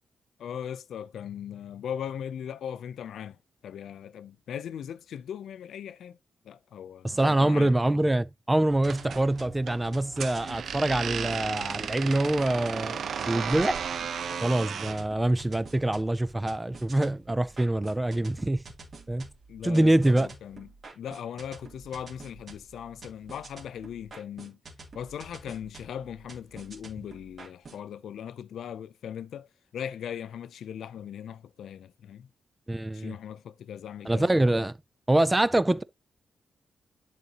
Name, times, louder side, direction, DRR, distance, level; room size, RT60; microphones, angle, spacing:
voice 1, 0.4-3.4 3.6-6.2 6.4-7.7 11.5-11.6 19.5-20.7 21.0-24.6 24.9-32.3 32.9-34.3, left 9 dB, 80° left, 0.4 m, -39 dB
voice 2, 7.0-13.8 14.4-18.6 19.1-19.3 19.6-20.3 32.7-33.1 34.0-34.7 35.1-35.8, right 1 dB, 10° right, 0.4 m, -25 dB
sound 1, 8.8-27.8, right 3 dB, 35° right, 2.7 m, -49 dB
sound 2, 8.8-15.0, right 7 dB, 55° right, 0.7 m, -34 dB
11.0 x 4.0 x 2.9 m
wide cardioid pair, 170°, 0 cm